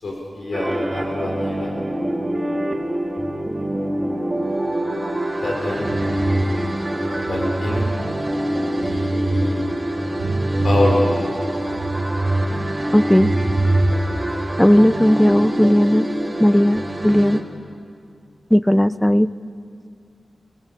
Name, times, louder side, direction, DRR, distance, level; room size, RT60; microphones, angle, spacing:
voice 1, 0.0-1.7 5.4-5.9 7.0-7.9 8.8-9.6 10.6-11.0, left 2 dB, 90° left, -1 dB, 5.1 m, -26 dB
sound 1, 0.5-17.4, right 1 dB, 20° right, 2.6 m, -25 dB
sound 2, 5.9-7.9 8.4-9.5 9.8-12.5 12.8-14.3, right 2 dB, 90° right, 1.9 m, -24 dB
voice 2, 12.9-13.3 14.6-16.1 16.4-17.4 18.5-19.3, equal, 10° left, 15 dB, 0.6 m, -15 dB
25.5 x 21.0 x 8.5 m, 2.3 s
wide cardioid pair, 70°, 0 cm